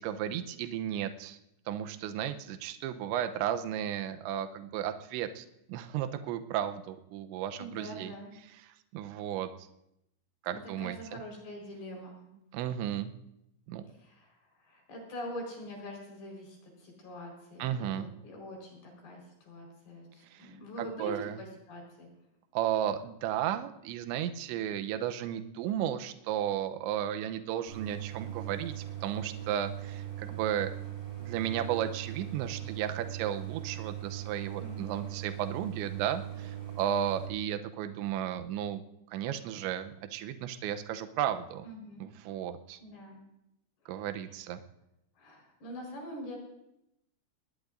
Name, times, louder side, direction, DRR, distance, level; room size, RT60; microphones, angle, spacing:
voice 1, 0.0-1.4 1.7-8.1 8.9-9.5 10.4-11.2 12.5-13.1 13.7-13.9 17.6-18.1 20.3-20.5 20.8-21.4 22.5-30.7 31.2-38.8 39.1-41.7 42.0-42.8 43.9-44.6, right 10 dB, 80° right, 8 dB, 3.0 m, -34 dB
voice 2, 7.6-8.3 10.5-12.2 13.9-21.1 21.4-22.1 34.6-35.1 36.8-37.0 41.6-42.1 42.8-43.2 45.2-46.4, equal, 55° left, -1 dB, 6.3 m, -44 dB
Idling, 27.7-37.3, right 12 dB, 55° right, 7.8 m, -40 dB
20.0 x 20.0 x 2.6 m, 0.84 s
omnidirectional pair, 5.5 m